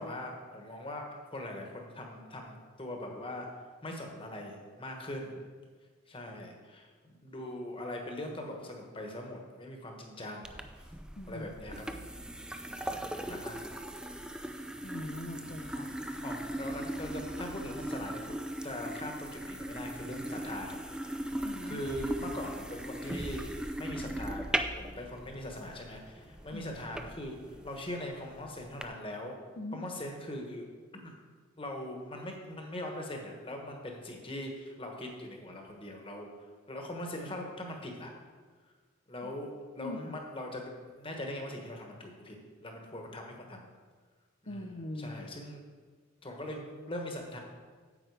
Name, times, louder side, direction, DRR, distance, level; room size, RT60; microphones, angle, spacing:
voice 1, 0.0-5.4 6.1-10.9 11.3-12.0 12.9-13.6 16.2-18.4 18.6-29.4 29.7-30.6 31.0-31.1 31.6-36.3 36.7-38.1 39.1-42.4 42.6-43.6 44.4-45.7 46.2-47.4, left 1 dB, 25° left, 2 dB, 1.3 m, -41 dB
sound 1, 10.4-28.8, right 1 dB, 5° right, 0.3 m, -39 dB
voice 2, 14.8-15.9 21.4-21.8 26.5-26.6 29.6-29.8 39.2-39.3 39.8-40.2 44.5-45.2, left 1 dB, 40° left, 2 dB, 0.6 m, -41 dB
9.0 x 7.7 x 4.8 m, 1.5 s
head